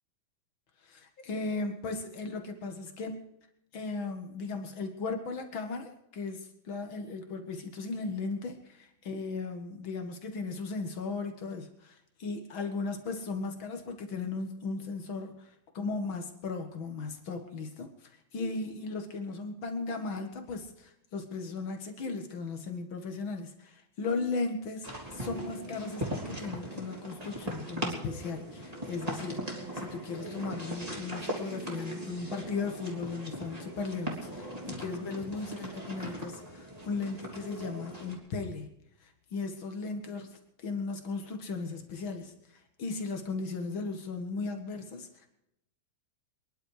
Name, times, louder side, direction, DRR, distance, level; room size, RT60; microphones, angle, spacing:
voice 1, 0.8-3.2 3.7-38.7 39.0-45.3, left 4 dB, 45° left, 5 dB, 1.8 m, -37 dB
sound 1, 24.8-38.2, right 1 dB, 10° right, 2.9 m, -39 dB
24.0 x 11.0 x 4.9 m, 0.79 s
omnidirectional pair, 4.2 m